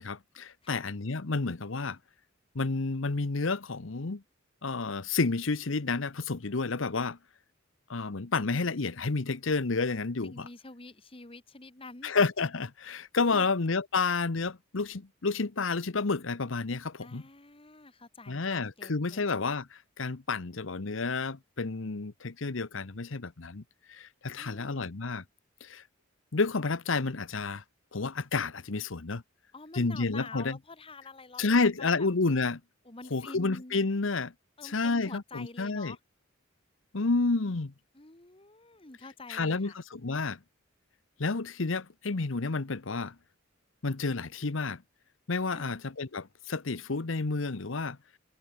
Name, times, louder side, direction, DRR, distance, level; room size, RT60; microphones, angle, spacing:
voice 1, 0.0-2.0 2.5-4.2 4.6-7.2 7.9-10.5 12.0-17.2 18.3-23.6 23.9-25.2 25.6-25.8 26.3-27.6 27.9-29.2 29.7-30.6 31.4-32.6 33.1-34.3 34.6-36.0 36.9-37.7 39.3-40.4 41.2-43.1 43.8-44.8 45.3-48.0, left 3 dB, 70° left, 1.0 m, -30 dB
voice 2, 10.2-12.1 13.3-13.5 17.0-19.2 24.4-24.9 29.5-32.1 32.8-33.8 34.6-36.0 37.9-39.8 45.5-45.8, left 3 dB, 25° left, 1.6 m, -47 dB
head